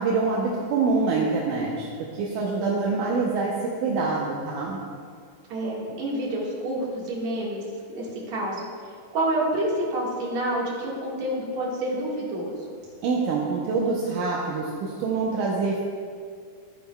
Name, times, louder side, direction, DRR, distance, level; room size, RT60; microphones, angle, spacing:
voice 1, 0.0-1.9 2.2-4.8 13.0-15.8, right 4 dB, 75° right, -3 dB, 2.3 m, -25 dB
voice 2, 5.5-7.6 7.9-8.7 9.1-12.6, right 1 dB, 60° right, -4 dB, 2.8 m, -28 dB
13.5 x 9.7 x 2.3 m, 2.1 s
omnidirectional pair, 3.7 m